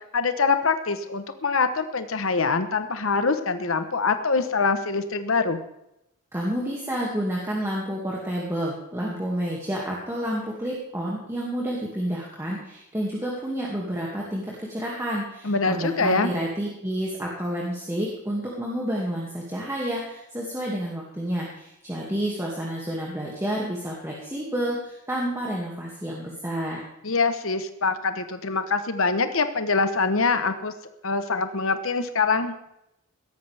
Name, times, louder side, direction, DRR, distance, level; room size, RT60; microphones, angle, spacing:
voice 1, 0.1-5.6 15.4-16.3 27.0-30.7 31.0-32.5, left 4 dB, 65° left, 9 dB, 1.0 m, -24 dB
voice 2, 6.3-26.8, equal, 10° right, -4 dB, 2.2 m, -29 dB
17.0 x 13.5 x 3.5 m, 0.83 s
head